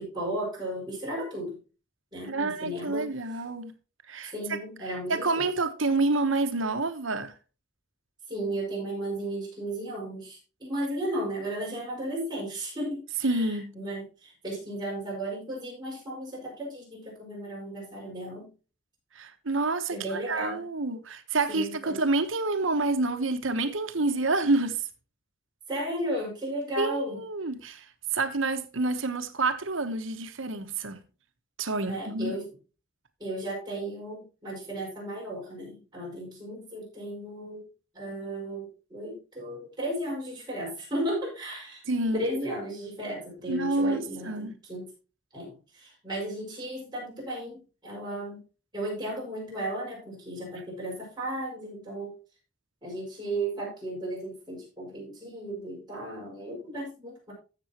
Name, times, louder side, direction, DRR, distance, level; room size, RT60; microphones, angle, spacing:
voice 1, 0.0-1.6 2.1-3.1 4.3-5.5 8.3-18.5 19.9-20.6 21.5-22.0 25.7-27.2 31.9-32.5 33.2-37.7 37.9-41.8 42.1-44.9 45.3-48.4 48.7-52.1 52.8-57.3, right 1 dB, 20° right, 6.0 m, -35 dB
voice 2, 2.2-3.7 4.1-4.6 5.1-7.3 13.2-13.7 19.2-24.8 26.8-27.8 28.1-31.0 31.6-32.3 41.9-42.2 43.5-44.5, right 3 dB, 85° right, 1.2 m, -28 dB
14.5 x 7.0 x 2.9 m
head